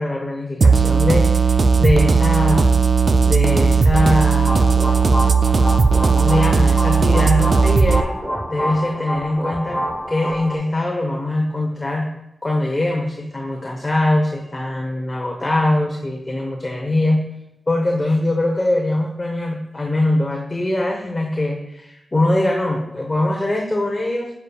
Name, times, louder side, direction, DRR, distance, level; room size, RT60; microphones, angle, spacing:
voice 1, 0.0-2.7 3.3-4.8 6.1-8.1 8.5-9.8 10.1-12.1 12.4-17.2 17.7-24.3, left 1 dB, 30° left, 0 dB, 1.1 m, -22 dB
sound 1, 0.6-8.0, right 5 dB, 60° right, 0.4 m, -16 dB
sound 2, 4.1-10.6, equal, 5° right, 1.3 m, -27 dB
7.5 x 7.0 x 2.4 m, 0.88 s
cardioid pair, 65°, 0 cm